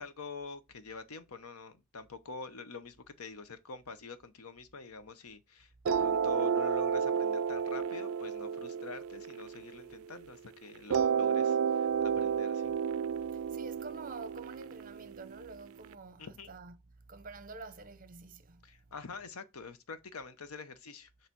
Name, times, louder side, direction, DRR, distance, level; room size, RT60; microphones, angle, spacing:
voice 1, 0.0-12.8 16.2-16.5 18.6-21.3, left 4 dB, 85° left, 0.9 m, -46 dB
sound 1, 5.9-10.2 10.9-15.9, right 7 dB, 70° right, 0.3 m, -31 dB
voice 2, 13.2-18.9, right 3 dB, 40° right, 0.7 m, -48 dB
6.9 x 3.3 x 6.0 m
head